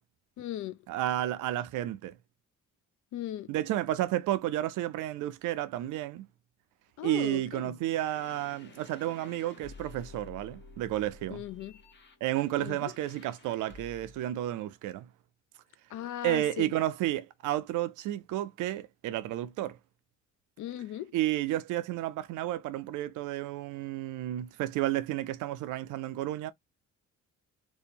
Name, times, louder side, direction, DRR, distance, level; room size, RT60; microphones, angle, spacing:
voice 1, 0.4-0.8 3.1-3.5 7.0-7.8 11.3-11.8 12.6-12.9 15.9-16.7 20.6-21.2, left 12 dB, 75° left, 0.5 m, -38 dB
voice 2, 0.9-2.2 3.5-6.3 7.0-11.4 12.2-15.1 16.2-19.8 21.1-26.5, right 14 dB, 85° right, 0.5 m, -31 dB
sound 1, 7.8-14.3, left 4 dB, 35° left, 0.8 m, -52 dB
2.7 x 2.1 x 2.6 m
cardioid pair, 90°, 30 cm